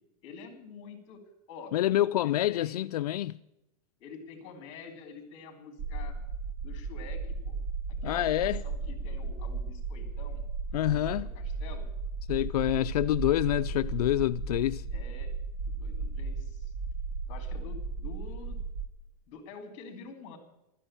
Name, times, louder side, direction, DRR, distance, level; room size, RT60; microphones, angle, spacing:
voice 1, 0.2-1.2 1.5-1.8 2.2-2.8 4.0-6.2 6.6-7.6 8.0-10.4 10.9-11.9 14.9-15.3 15.7-16.7 17.3-18.6 19.3-20.4, left 5 dB, 35° left, 3.8 m, -47 dB
voice 2, 1.7-3.4 8.0-8.6 10.7-11.3 12.3-14.9, left 14 dB, 85° left, 0.5 m, -27 dB
sound 1, 5.8-18.9, right 4 dB, 40° right, 1.1 m, -35 dB
13.0 x 9.9 x 8.9 m
supercardioid pair, 165°, 19 cm